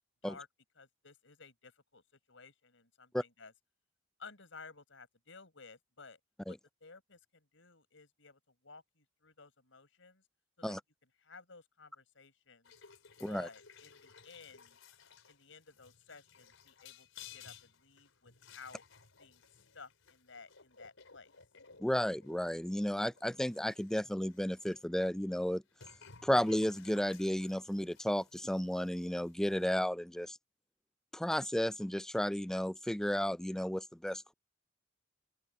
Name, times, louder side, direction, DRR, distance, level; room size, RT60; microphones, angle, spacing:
voice 1, 0.7-3.5 4.2-6.2 6.5-10.2 10.6-10.8 11.2-12.7 13.3-14.8 15.3-17.1 17.3-18.8 19.2-19.4 19.7-21.3, left 4 dB, 70° left, 6.8 m, -55 dB
sound 1, 12.6-24.8 25.7-29.7, left 6 dB, 90° left, 4.1 m, -58 dB
voice 2, 21.8-25.6 26.2-30.4 31.1-34.3, equal, 5° left, 0.3 m, -33 dB
open air
head